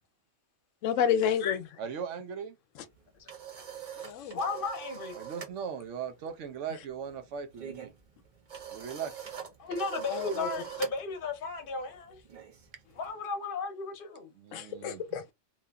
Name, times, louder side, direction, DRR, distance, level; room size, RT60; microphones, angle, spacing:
voice 1, 0.8-1.6 4.0-4.4 10.1-10.5 14.5-15.3, left 8 dB, 75° left, 0.9 m, -29 dB
voice 2, 1.8-2.6 5.1-7.9 8.7-9.1 14.4-15.0, right 7 dB, 70° right, 0.9 m, -38 dB
sound 1, 2.9-5.6 5.9-6.2 6.4-13.1, right 8 dB, 45° right, 0.7 m, -43 dB
voice 3, 4.0-5.2 9.6-12.2 12.9-14.3, left 4 dB, 50° left, 0.8 m, -35 dB
2.8 x 2.4 x 2.2 m
omnidirectional pair, 1.3 m